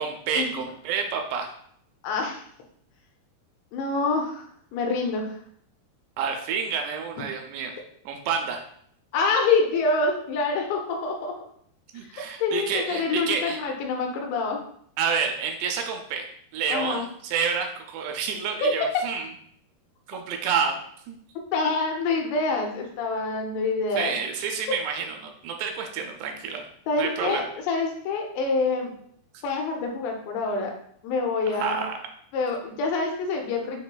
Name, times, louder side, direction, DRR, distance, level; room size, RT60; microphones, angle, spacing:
voice 1, 0.0-1.5 6.2-7.7 8.1-8.6 11.9-13.6 15.0-19.3 20.1-21.2 24.0-26.6 27.0-27.4 31.5-31.9, right 6 dB, 85° right, 3 dB, 2.7 m, -29 dB
voice 2, 2.0-2.4 3.7-4.4 4.7-5.3 9.1-11.4 12.4-14.6 16.7-17.0 18.6-18.8 21.5-24.1 26.9-28.9 29.4-30.7 31.0-31.9 32.3-33.8, left 3 dB, 85° left, 2 dB, 2.9 m, -26 dB
6.6 x 3.0 x 2.2 m, 0.64 s
omnidirectional pair, 4.9 m